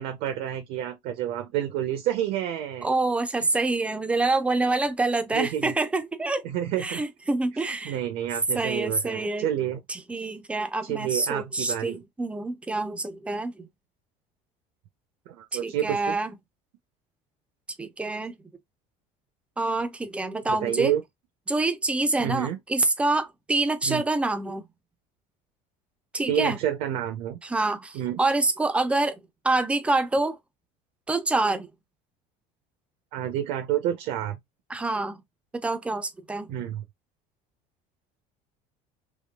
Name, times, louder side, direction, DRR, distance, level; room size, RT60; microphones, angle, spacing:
voice 1, 0.0-2.9 5.3-5.7 6.4-7.0 7.7-9.8 10.8-12.0 15.3-16.2 20.5-21.0 22.2-22.6 23.8-24.0 26.3-27.4 27.9-28.2 33.1-34.4 36.5-36.8, right 11 dB, 70° right, 0.7 m, -29 dB
voice 2, 2.8-6.4 6.8-8.0 8.5-9.5 9.9-13.7 15.5-16.3 17.8-18.4 19.6-20.9 21.5-24.6 26.1-26.6 27.4-30.4 31.1-31.7 34.7-35.2 35.5-36.5, right 2 dB, 5° right, 0.4 m, -26 dB
3.6 x 3.1 x 2.3 m
cardioid pair, 170°, 16 cm